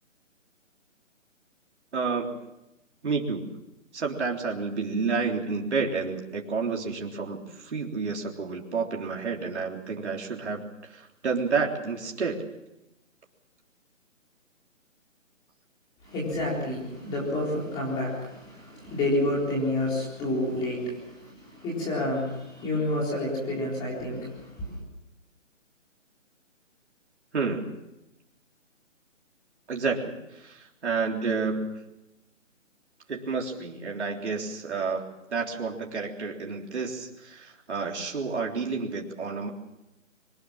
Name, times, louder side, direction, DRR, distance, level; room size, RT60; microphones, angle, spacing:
voice 1, 1.9-2.4 3.0-3.5 3.9-12.5 27.3-27.7 29.7-31.8 33.1-39.5, right 4 dB, 60° right, 0 dB, 3.6 m, -30 dB
voice 2, 16.0-24.8, left 1 dB, 10° left, -4 dB, 4.0 m, -29 dB
23.5 x 20.0 x 7.3 m, 0.91 s
hypercardioid pair, 170°, 39 cm